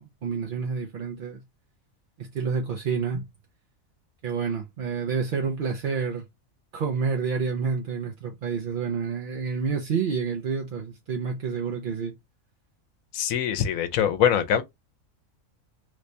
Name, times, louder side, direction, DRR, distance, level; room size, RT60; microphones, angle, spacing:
voice 1, 0.0-1.4 2.2-3.2 4.2-6.2 6.7-12.1, right 5 dB, 55° right, 0.6 m, -29 dB
voice 2, 13.1-14.6, left 9 dB, 85° left, 1.0 m, -23 dB
3.2 x 2.6 x 3.2 m
omnidirectional pair, 1.4 m